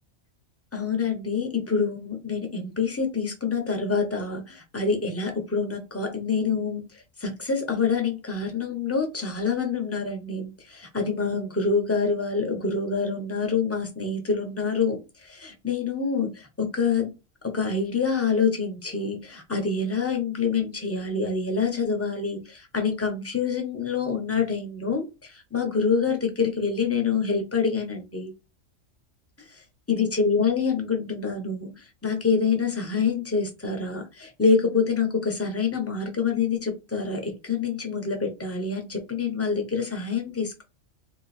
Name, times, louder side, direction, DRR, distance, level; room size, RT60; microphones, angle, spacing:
voice 1, 0.7-6.9 7.2-17.1 17.4-28.3 29.9-31.7 32.0-40.6, left 5 dB, 15° left, 3 dB, 0.6 m, -26 dB
2.9 x 2.4 x 4.1 m, 0.27 s
omnidirectional pair, 1.4 m